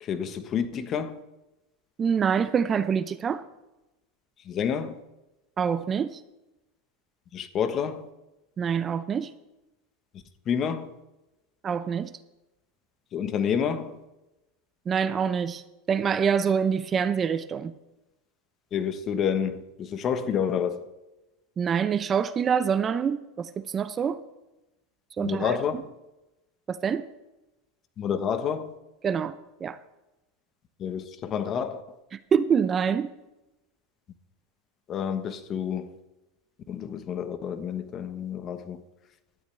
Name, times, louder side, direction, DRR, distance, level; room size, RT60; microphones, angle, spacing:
voice 1, 0.0-1.2 4.5-5.0 7.3-8.1 10.5-10.9 13.1-14.0 18.7-20.8 25.2-25.8 28.0-28.7 30.8-31.8 34.9-35.9 36.7-38.8, left 7 dB, 35° left, 1.2 m, -29 dB
voice 2, 2.0-3.4 5.6-6.2 8.6-9.3 11.6-12.1 14.9-15.6 15.9-17.7 21.6-24.2 25.2-25.8 26.7-27.0 29.0-29.8 32.1-33.1, right 7 dB, 25° right, 0.6 m, -26 dB
17.0 x 12.5 x 3.4 m
supercardioid pair, 120°, 0 cm